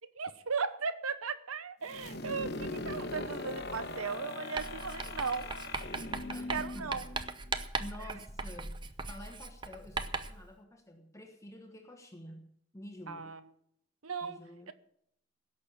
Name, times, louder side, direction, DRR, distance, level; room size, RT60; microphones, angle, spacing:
voice 1, 0.2-5.7 6.5-7.1 8.0-8.1 13.1-13.4 14.0-14.4 14.7-14.8, right 5 dB, 90° right, 1.0 m, -37 dB
sound 1, 1.9-7.6, left 2 dB, 50° left, 1.2 m, -40 dB
Writing, 4.6-10.5, right 3 dB, 20° right, 0.6 m, -39 dB
voice 2, 6.3-7.1 7.8-13.3 14.2-14.7, left 1 dB, 15° left, 1.2 m, -49 dB
17.0 x 6.6 x 8.8 m
head